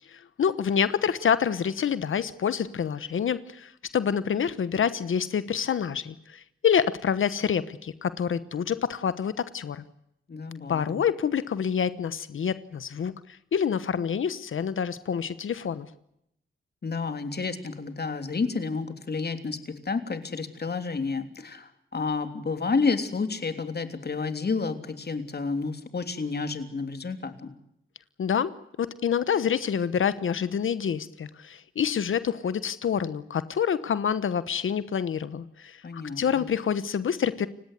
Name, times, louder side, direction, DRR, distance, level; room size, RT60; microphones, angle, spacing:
voice 1, 0.1-9.8 10.7-15.9 28.2-37.5, left 7 dB, 80° left, 15 dB, 1.1 m, -27 dB
voice 2, 10.3-11.0 16.8-27.5 35.8-36.5, left 4 dB, 55° left, 8 dB, 3.3 m, -30 dB
30.0 x 17.0 x 8.2 m, 0.78 s
cardioid pair, 70°, 20 cm